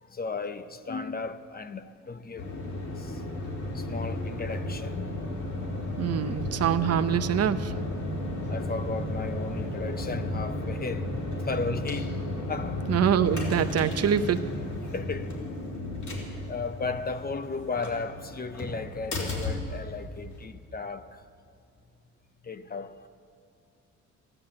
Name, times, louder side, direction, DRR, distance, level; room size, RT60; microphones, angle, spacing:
voice 1, 0.0-2.5 3.0-3.3 3.6-5.1 8.5-12.2 12.5-12.8 14.8-15.4 16.5-21.2 22.4-23.1, left 4 dB, 30° left, 0.8 m, -35 dB
sound 1, 2.4-20.4, left 1 dB, 70° left, 4.0 m, -33 dB
voice 2, 6.0-7.7 12.9-14.4, right 9 dB, 55° right, 0.8 m, -25 dB
14.5 x 11.0 x 8.8 m
cardioid pair, 90°, 30 cm